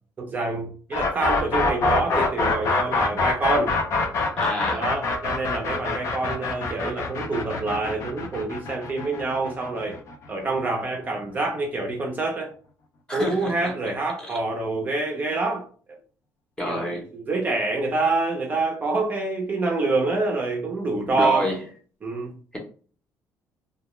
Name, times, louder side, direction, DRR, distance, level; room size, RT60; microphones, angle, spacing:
voice 1, 0.2-3.7 4.7-10.0 10.3-12.5 13.1-15.6 16.7-21.5 22.0-22.3, right 3 dB, 25° right, 0.5 m, -26 dB
sound 1, 0.9-10.8, left 3 dB, 50° left, 0.5 m, -25 dB
voice 2, 4.4-4.9 13.1-13.7 14.2-14.3 16.6-17.0 21.1-21.6 22.5-22.6, left 1 dB, 10° left, 0.7 m, -29 dB
2.2 x 2.1 x 2.9 m
cardioid pair, 140°, 7 cm